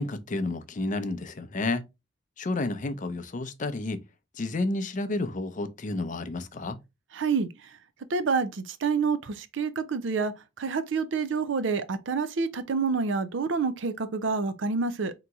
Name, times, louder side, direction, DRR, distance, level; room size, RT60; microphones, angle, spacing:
voice 1, 0.0-1.8 2.4-4.0 4.4-6.8, left 2 dB, 40° left, 0.5 m, -30 dB
voice 2, 7.1-7.5 8.1-15.1, right 4 dB, 70° right, 0.5 m, -28 dB
3.9 x 2.9 x 3.5 m
head